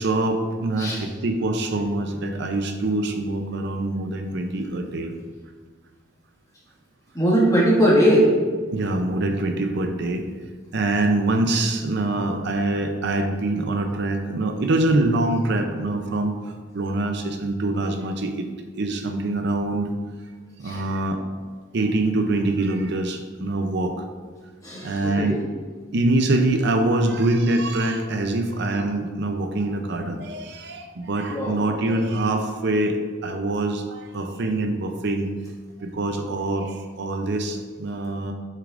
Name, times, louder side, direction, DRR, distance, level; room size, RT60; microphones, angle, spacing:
voice 1, 0.0-5.1 8.7-10.3 10.7-16.3 16.7-18.5 18.7-19.9 20.6-21.2 21.7-24.0 24.8-25.4 25.9-35.3 35.8-38.3, right 2 dB, 60° right, 6 dB, 0.6 m, -24 dB
voice 2, 7.1-8.3 20.6-20.8 24.6-25.4 31.3-31.6, right 1 dB, 20° left, -5 dB, 1.8 m, -19 dB
8.4 x 6.5 x 2.5 m, 1.5 s
head